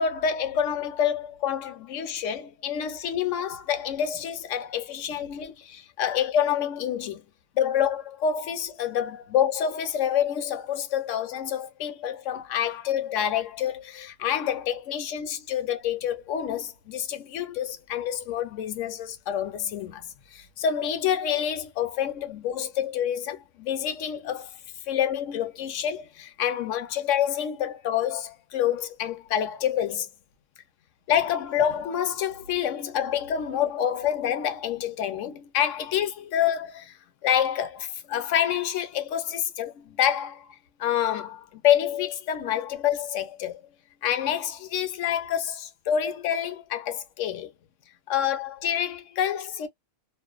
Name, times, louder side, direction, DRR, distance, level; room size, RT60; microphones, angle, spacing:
voice 1, 0.0-7.2 7.6-24.6 24.9-30.1 31.1-37.0 37.2-43.6 44.0-47.5 48.1-49.7, left 9 dB, 70° left, 0.9 m, -27 dB
2.5 x 2.1 x 2.3 m
omnidirectional pair, 1.5 m